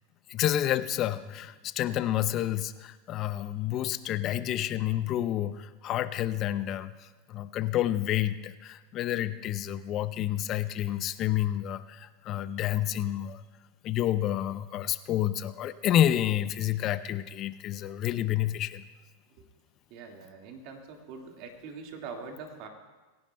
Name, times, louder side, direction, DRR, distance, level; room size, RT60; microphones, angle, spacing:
voice 1, 0.3-13.4 13.8-18.8, left 12 dB, 40° left, 13 dB, 0.5 m, -29 dB
voice 2, 19.9-22.7, right 5 dB, 55° right, 2 dB, 1.9 m, -43 dB
25.0 x 10.5 x 2.2 m, 1.2 s
hypercardioid pair, 115°, 0 cm